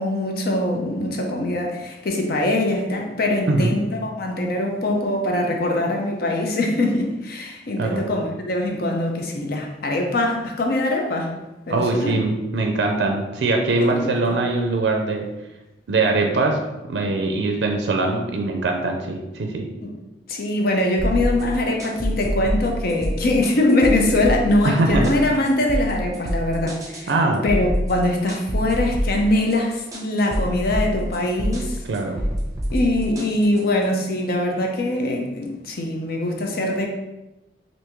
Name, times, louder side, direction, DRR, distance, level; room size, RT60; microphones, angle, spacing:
voice 1, 0.0-11.3 11.7-12.2 13.8-14.4 19.8-19.9 20.3-27.1 27.4-31.8 32.7-36.9, left 1 dB, 55° left, 1 dB, 0.5 m, -22 dB
voice 2, 11.7-15.2 15.9-16.6 16.9-19.7 24.6-25.1 27.1-27.4 31.9-32.2, right 3 dB, 70° right, 3 dB, 0.4 m, -22 dB
sound 1, 21.0-33.8, equal, 20° right, 0.6 m, -26 dB
3.4 x 2.6 x 3.0 m, 0.99 s
head